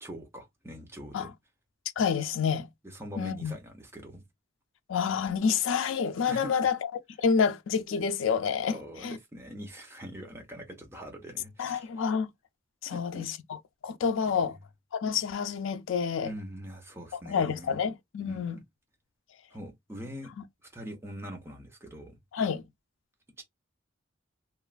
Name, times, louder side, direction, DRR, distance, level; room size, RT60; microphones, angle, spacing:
voice 1, 0.0-1.3 2.8-4.2 6.3-6.5 8.7-11.9 12.9-13.3 16.2-17.8 18.3-18.5 19.5-20.3 20.6-22.2 23.4-23.5, equal, 10° right, 0.7 m, -43 dB
voice 2, 2.0-2.7 3.2-3.5 4.9-6.9 7.2-8.8 9.0-9.2 11.6-12.3 12.8-14.5 14.9-16.3 17.1-18.6 22.3-22.6, left 6 dB, 70° left, 0.4 m, -28 dB
3.0 x 2.4 x 2.3 m
head